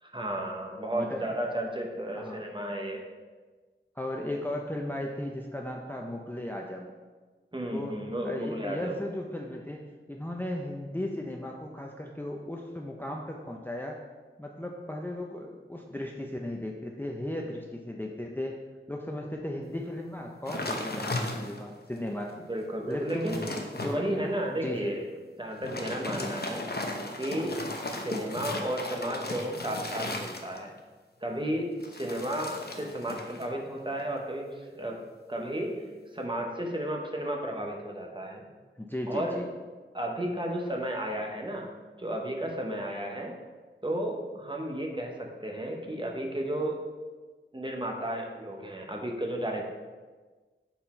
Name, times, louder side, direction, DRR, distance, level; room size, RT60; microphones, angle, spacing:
voice 1, 0.0-3.1 7.5-9.0 22.5-23.4 23.8-25.1 25.4-26.7 27.2-30.7 31.2-35.0 35.3-35.9 36.1-38.4 39.1-39.4 39.9-43.3 43.8-46.9 47.5-49.6, right 1 dB, 25° right, 0 dB, 1.0 m, -33 dB
voice 2, 0.9-1.3 2.1-2.4 4.0-6.9 7.7-8.0 8.2-9.8 10.1-14.0 14.4-18.6 18.9-22.3 22.9-23.4 23.7-24.9 38.8-39.5, left 1 dB, 10° left, 0 dB, 0.5 m, -36 dB
sound 1, 20.5-21.8 22.3-22.4 22.8-24.0 25.5-30.8 31.8-33.5 33.8-34.2, left 2 dB, 50° left, 0.7 m, -36 dB
5.9 x 4.2 x 4.3 m, 1.4 s
wide cardioid pair, 40°, 20 cm